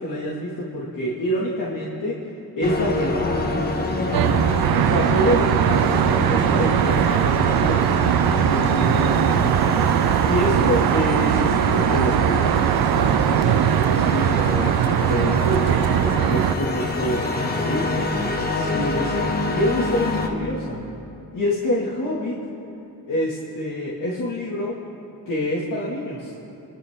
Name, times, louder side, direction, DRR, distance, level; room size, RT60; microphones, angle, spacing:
voice 1, 0.0-2.2 2.6-4.3 4.7-7.9 8.4-9.6 10.2-15.9 16.3-18.0 18.5-20.8 21.3-22.4 23.1-24.8 25.3-26.3, left 1 dB, 60° left, -7 dB, 2.4 m, -27 dB
sound 1, 2.6-20.3, left 2 dB, 25° left, 1.3 m, -26 dB
Traffic noise roadway noise, 4.1-16.6, right 12 dB, 80° right, 0.5 m, -20 dB
30.0 x 11.0 x 3.8 m, 2.7 s
wide cardioid pair, 145°, 36 cm